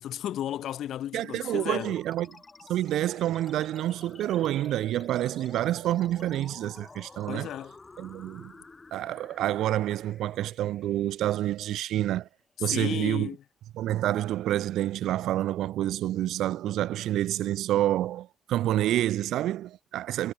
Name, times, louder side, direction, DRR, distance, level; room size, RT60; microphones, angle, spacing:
voice 1, 0.0-2.0 7.3-7.7 12.6-13.4, left 11 dB, 75° left, 0.3 m, -34 dB
voice 2, 1.1-2.4 2.7-7.5 8.0-8.5 8.9-12.3 12.6-13.3 13.7-20.3, right 13 dB, 80° right, 0.3 m, -28 dB
sound 1, 1.4-12.3, left 3 dB, 25° left, 1.5 m, -51 dB
cardioid pair, 90°, 0 cm